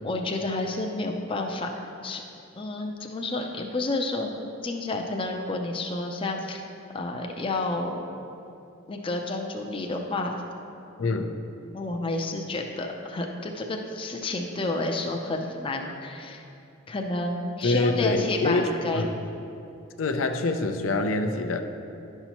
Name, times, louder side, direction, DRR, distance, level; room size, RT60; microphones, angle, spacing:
voice 1, 0.0-1.7 2.0-2.2 2.6-4.3 4.6-6.6 6.9-8.0 8.9-10.4 11.7-16.4 16.9-19.1, left 2 dB, 25° left, 2 dB, 0.5 m, -30 dB
voice 2, 11.0-11.4 17.6-18.7 18.9-19.1 20.0-21.6, left 3 dB, 85° left, 6 dB, 0.5 m, -25 dB
11.0 x 5.6 x 3.0 m, 2.7 s
head